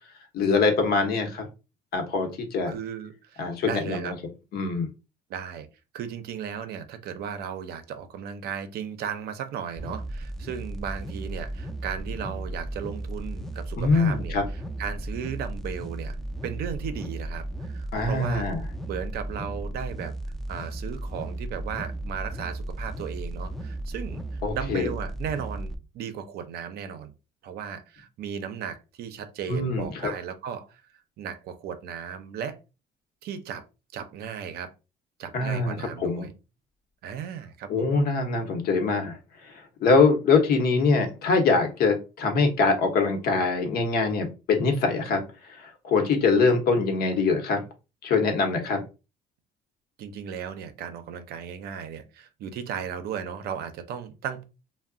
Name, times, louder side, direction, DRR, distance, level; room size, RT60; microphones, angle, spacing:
voice 1, 0.3-1.5 1.9-2.7 3.4-4.2 4.5-4.9 13.8-14.4 17.9-18.6 24.4-24.9 29.5-30.1 35.3-36.3 37.7-39.2 39.8-45.2 45.5-47.7 48.0-48.8, left 4 dB, 65° left, 0.8 m, -23 dB
voice 2, 2.7-4.1 5.3-5.7 5.9-16.2 16.4-18.5 18.9-20.2 20.5-27.1 27.4-30.8 31.2-32.6 33.2-33.6 33.9-34.7 35.2-36.3 37.0-38.0 50.0-54.4, right 8 dB, 70° right, 0.5 m, -36 dB
sound 1, 9.8-25.8, right 1 dB, ahead, 0.4 m, -35 dB
2.3 x 2.0 x 3.6 m
cardioid pair, 110°, 17 cm